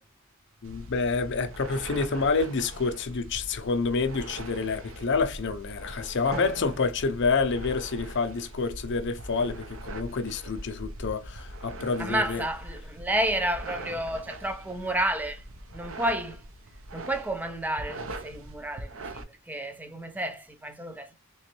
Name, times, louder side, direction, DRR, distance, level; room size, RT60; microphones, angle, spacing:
voice 1, 0.6-12.4, left 4 dB, 50° left, 0.5 m, -28 dB
sound 1, 0.6-19.2, right 1 dB, 65° right, 0.6 m, -42 dB
Drum, 6.3-8.3, right 2 dB, 45° right, 1.1 m, -42 dB
voice 2, 12.0-15.4 15.7-16.4 16.9-21.1, right 1 dB, 5° right, 0.4 m, -31 dB
3.6 x 3.0 x 3.0 m
head